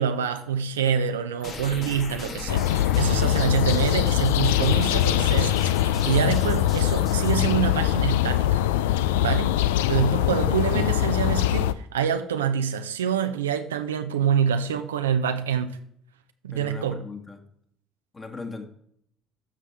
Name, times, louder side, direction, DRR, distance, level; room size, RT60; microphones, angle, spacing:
voice 1, 0.0-8.6 9.2-15.8 16.4-17.0, right 8 dB, 90° right, 0.5 m, -26 dB
sound 1, 1.4-7.4, left 4 dB, 55° left, 1.7 m, -37 dB
sound 2, 2.5-11.7, left 13 dB, 80° left, 0.3 m, -22 dB
voice 2, 16.5-17.4 18.1-18.7, left 3 dB, 25° left, 1.7 m, -38 dB
12.5 x 6.1 x 3.4 m
hypercardioid pair, 60°, 0 cm